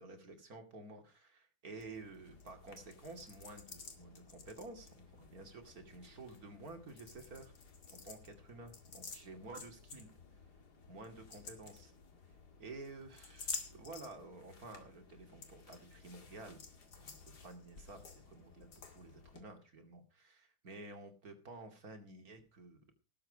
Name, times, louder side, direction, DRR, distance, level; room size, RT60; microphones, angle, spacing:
voice 1, 0.0-7.5 8.0-10.1 10.9-11.9 12.6-16.6 17.0-22.8, right 2 dB, 45° right, 6 dB, 2.9 m, -52 dB
sound 1, 1.8-19.4, left 4 dB, 55° left, 2.8 m, -52 dB
18.5 x 7.8 x 4.8 m, 0.33 s
omnidirectional pair, 2.1 m